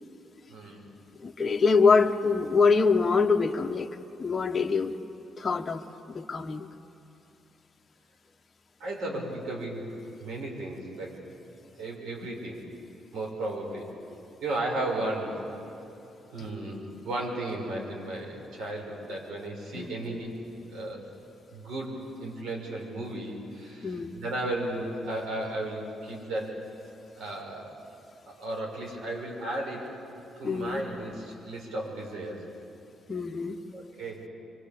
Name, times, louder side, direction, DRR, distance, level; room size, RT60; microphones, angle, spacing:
voice 1, 0.5-0.9 8.8-9.9 10.2-11.2 11.8-12.6 13.1-13.9 14.4-15.5 16.3-20.3 20.7-21.1 21.5-26.6 27.2-27.7 28.3-29.9 30.4-32.5 33.7-34.3, right 1 dB, 80° right, -1 dB, 5.8 m, -34 dB
voice 2, 1.2-3.9 4.2-5.0 5.4-6.7 16.4-16.5 19.7-19.9 23.8-24.2 30.4-30.8 33.1-33.6, left 4 dB, 30° left, 2 dB, 1.2 m, -24 dB
24.5 x 24.5 x 8.6 m, 2.9 s
cardioid pair, 90°, 0 cm